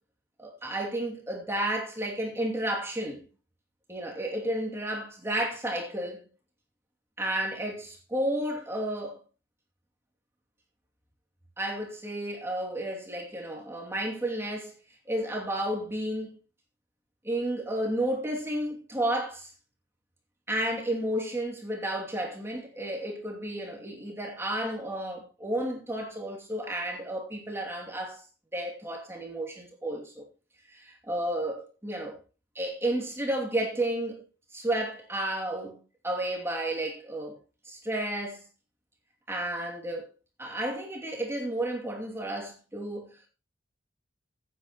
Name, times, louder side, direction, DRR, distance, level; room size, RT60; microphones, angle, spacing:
voice 1, 0.4-3.3 3.9-6.3 7.2-9.2 11.6-14.7 15.1-16.4 17.2-19.5 20.5-28.2 28.5-30.2 30.7-32.2 32.5-34.2 34.5-35.8 36.0-37.4 37.6-38.4 39.3-40.1 40.4-43.1, right 1 dB, 15° right, 2.6 m, -32 dB
14.0 x 9.4 x 3.0 m
head